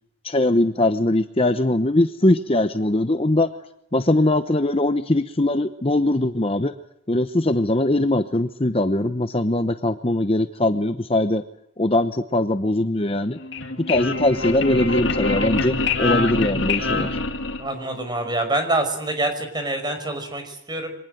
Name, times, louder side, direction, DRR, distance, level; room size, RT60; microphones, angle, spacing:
voice 1, 0.2-3.5 3.9-6.7 7.1-11.4 11.8-13.4 13.9-17.2, left 1 dB, 25° left, 9 dB, 0.9 m, -21 dB
sound 1, 13.3-18.1, left 3 dB, 60° left, 2.8 m, -25 dB
voice 2, 17.6-20.9, right 2 dB, 20° right, 7 dB, 5.6 m, -26 dB
25.0 x 19.5 x 8.0 m, 0.78 s
head